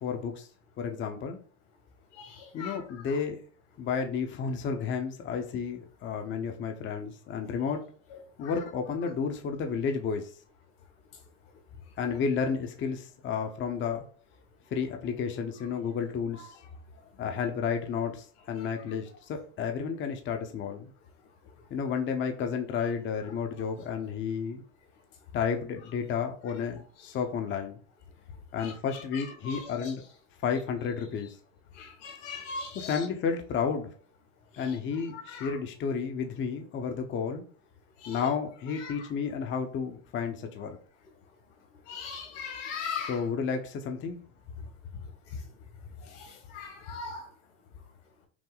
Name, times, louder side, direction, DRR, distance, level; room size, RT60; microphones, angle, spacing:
voice 1, 0.0-0.5 0.8-1.4 2.5-3.4 3.8-7.8 8.4-10.3 12.0-14.1 14.7-16.5 17.2-20.9 21.7-24.6 25.3-27.8 28.5-30.0 30.4-31.4 32.7-33.9 34.6-37.4 38.1-40.8 43.1-44.2, left 6 dB, 30° left, 4 dB, 0.8 m, -32 dB
voice 2, 2.2-3.2 8.1-8.5 16.3-16.5 18.6-18.7 27.0-27.1 28.6-29.9 31.7-33.1 34.5-35.6 38.0-38.2 38.8-39.1 41.9-43.2 46.0-47.3, left 5 dB, 65° left, 4 dB, 1.8 m, -41 dB
6.0 x 2.0 x 3.9 m, 0.43 s
supercardioid pair, 110°, 36 cm